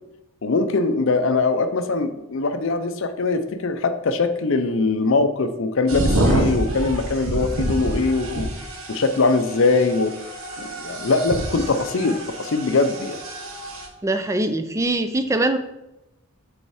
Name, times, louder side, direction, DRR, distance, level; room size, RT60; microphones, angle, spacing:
voice 1, 0.4-8.5 8.9-10.1 10.6-13.2, left 3 dB, 60° left, 9 dB, 0.5 m, -22 dB
sound 1, 5.9-13.9, right 1 dB, 70° right, 1.0 m, -27 dB
voice 2, 14.0-15.6, right 2 dB, 15° right, 8 dB, 0.3 m, -22 dB
5.3 x 4.2 x 4.8 m, 0.92 s
head